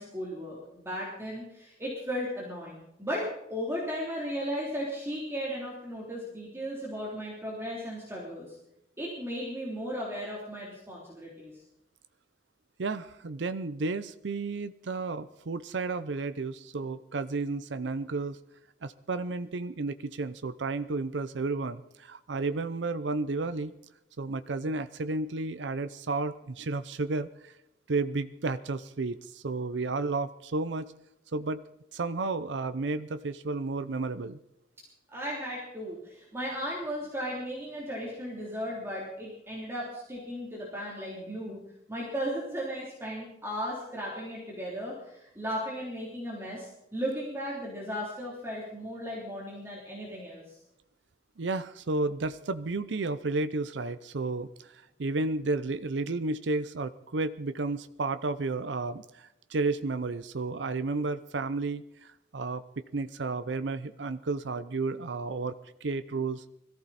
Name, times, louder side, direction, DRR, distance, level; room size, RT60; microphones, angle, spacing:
voice 1, 0.0-3.2 3.5-8.5 9.0-11.5 35.1-41.6 41.9-50.6, equal, 15° right, -5 dB, 3.3 m, -36 dB
voice 2, 12.8-18.4 18.8-23.7 24.2-27.5 27.9-30.9 31.3-31.6 31.9-34.4 51.4-62.6 62.9-66.4, right 3 dB, 85° right, 12 dB, 0.6 m, -32 dB
21.5 x 14.5 x 4.2 m, 0.81 s
head